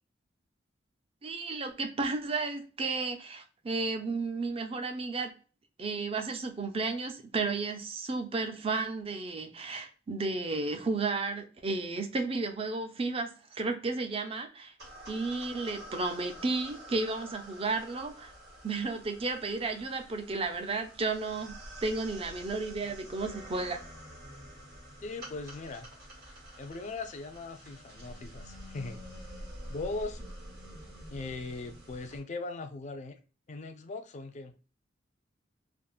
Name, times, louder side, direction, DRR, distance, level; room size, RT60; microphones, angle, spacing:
voice 1, 1.2-5.3 5.8-14.7 15.1-18.3 18.6-23.8, right 3 dB, 30° right, 0.5 m, -33 dB
sound 1, 14.8-32.2, equal, 60° right, 1.2 m, -48 dB
voice 2, 25.0-25.9 26.6-29.0 29.7-30.2 31.1-33.2 33.5-34.6, left 3 dB, 40° left, 0.4 m, -39 dB
3.5 x 2.0 x 2.3 m
head